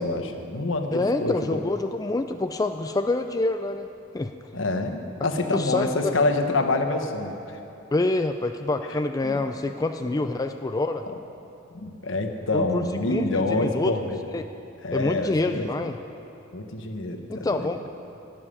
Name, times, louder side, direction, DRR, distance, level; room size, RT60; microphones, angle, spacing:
voice 1, 0.0-1.6 4.5-7.6 8.9-9.4 11.7-14.2 14.8-15.7 16.5-17.7, left 2 dB, 75° left, 5 dB, 1.1 m, -27 dB
voice 2, 0.9-3.9 4.1-4.3 5.5-6.1 7.9-11.0 12.5-13.9 14.3-14.4 14.9-16.0 17.3-17.9, left 2 dB, 20° left, 7 dB, 0.3 m, -26 dB
13.0 x 7.2 x 9.9 m, 2.8 s
head